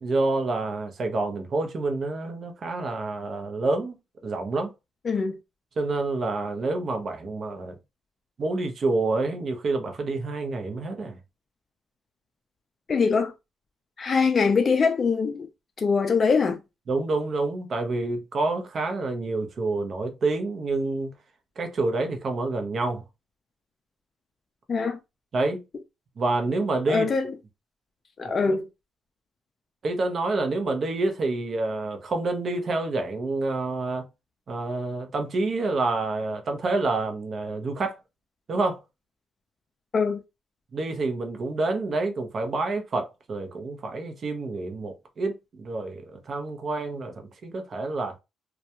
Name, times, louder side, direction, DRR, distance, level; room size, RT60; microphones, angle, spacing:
voice 1, 0.0-4.0 4.2-4.7 5.8-7.8 8.4-11.2 16.9-21.1 21.6-23.0 25.3-25.6 26.2-27.1 28.5-28.6 29.8-34.0 34.5-38.0 38.5-38.8 40.7-48.1, right 3 dB, 50° right, 0.7 m, -28 dB
voice 2, 5.0-5.4 12.9-13.3 14.0-15.5 15.8-16.6 24.7-25.0 26.9-27.3 28.2-28.7 39.9-40.2, left 5 dB, 40° left, 0.4 m, -23 dB
2.3 x 2.2 x 2.8 m
cardioid pair, 90°, 0 cm